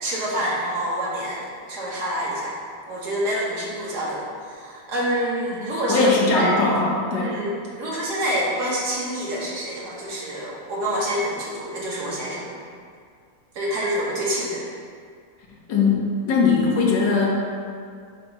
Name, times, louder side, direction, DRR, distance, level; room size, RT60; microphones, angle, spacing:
voice 1, 0.0-2.6 2.9-6.5 7.2-12.5 13.6-14.7, equal, 65° right, -5 dB, 1.7 m, -27 dB
voice 2, 5.5-7.3 15.7-17.3, left 4 dB, 80° left, -4 dB, 1.7 m, -20 dB
7.4 x 3.0 x 5.4 m, 2.2 s
omnidirectional pair, 1.9 m